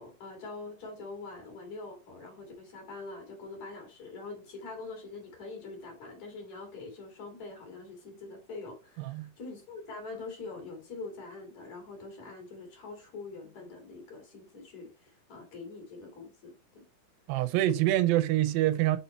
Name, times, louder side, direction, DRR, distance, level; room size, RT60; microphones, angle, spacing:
voice 1, 0.0-16.8, left 3 dB, 55° left, 3.2 m, -44 dB
voice 2, 9.0-9.3 17.3-19.0, right 14 dB, 85° right, 2.4 m, -26 dB
6.0 x 4.2 x 4.1 m
omnidirectional pair, 4.1 m